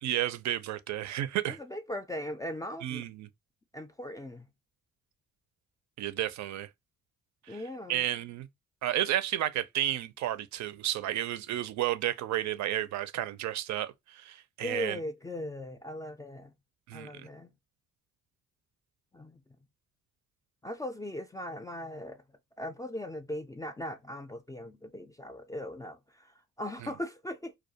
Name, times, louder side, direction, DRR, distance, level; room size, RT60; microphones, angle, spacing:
voice 1, 0.0-1.6 2.8-3.3 6.0-6.7 7.5-7.6 7.9-8.5 8.8-15.0 16.9-17.3 26.8-26.9, right 13 dB, 65° right, 0.4 m, -32 dB
voice 2, 1.5-3.0 3.7-4.5 7.5-8.1 14.6-16.5 16.9-17.5 19.1-19.4 20.6-22.2 22.6-27.5, left 1 dB, 10° left, 0.3 m, -39 dB
2.3 x 2.2 x 2.7 m
cardioid pair, 90°, 30 cm